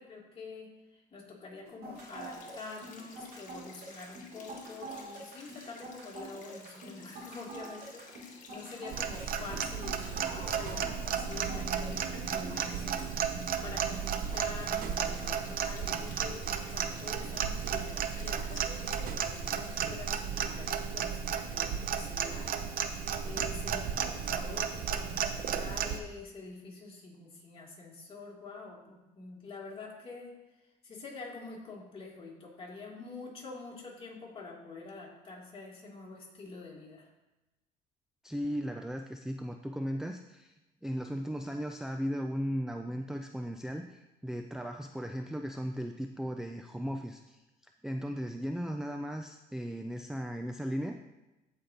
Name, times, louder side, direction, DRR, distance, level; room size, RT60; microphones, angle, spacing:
voice 1, 0.0-16.4 16.7-30.3 30.8-37.1, left 3 dB, 35° left, -4 dB, 2.9 m, -46 dB
sound 1, 1.7-12.3, right 2 dB, 85° right, 2.8 m, -46 dB
sound 2, 1.9-19.8, left 4 dB, 50° left, 1.6 m, -54 dB
Clock, 8.9-26.0, right 7 dB, 60° right, 0.7 m, -34 dB
voice 2, 38.2-40.5 40.8-47.4 47.8-51.0, equal, 5° right, 5 dB, 0.4 m, -36 dB
15.5 x 5.2 x 2.9 m, 1.0 s
cardioid pair, 110°, 17 cm